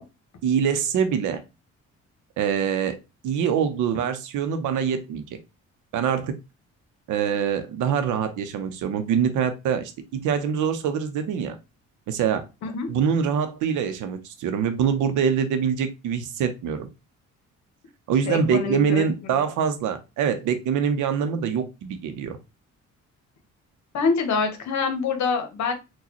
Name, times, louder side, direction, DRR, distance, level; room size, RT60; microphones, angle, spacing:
voice 1, 0.4-1.4 2.4-3.0 3.2-5.4 5.9-6.3 7.1-11.6 12.1-12.4 12.9-16.9 18.1-22.4, right 7 dB, 85° right, 8 dB, 0.7 m, -24 dB
voice 2, 18.3-19.4 23.9-25.7, left 5 dB, 65° left, 5 dB, 1.0 m, -26 dB
4.0 x 2.3 x 2.8 m, 0.26 s
cardioid pair, 90°, 30 cm